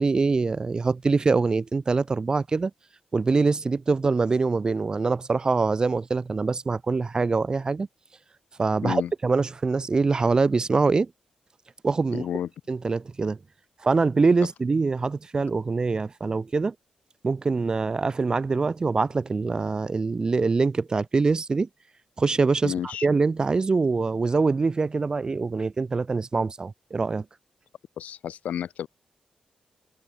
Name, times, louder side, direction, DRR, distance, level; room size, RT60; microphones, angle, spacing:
voice 1, 0.0-2.7 3.1-7.9 8.6-11.1 11.8-12.2 12.7-13.4 13.8-16.7 17.2-21.7 22.2-22.7 23.0-27.2, right 4 dB, 35° right, 0.6 m, -24 dB
voice 2, 12.1-12.5 22.6-23.1 28.0-28.9, left 10 dB, 85° left, 1.4 m, -31 dB
cardioid pair, 90°, 2 cm